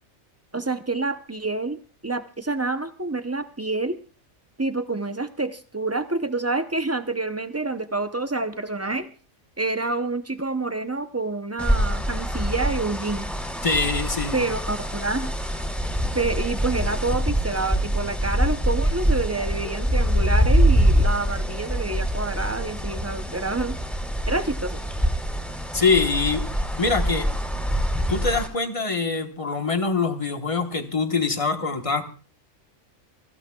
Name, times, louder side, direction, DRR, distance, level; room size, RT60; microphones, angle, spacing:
voice 1, 0.5-4.0 4.6-9.1 9.6-13.3 14.3-15.3 16.1-23.8 24.3-24.8, right 3 dB, 20° right, 9 dB, 0.4 m, -28 dB
sound 1, 11.6-28.5, equal, ahead, 2.6 m, -24 dB
voice 2, 13.6-14.4 25.7-26.4 26.8-27.3 28.1-32.0, left 4 dB, 25° left, 6 dB, 1.2 m, -24 dB
24.0 x 15.0 x 2.3 m, 0.36 s
omnidirectional pair, 1.4 m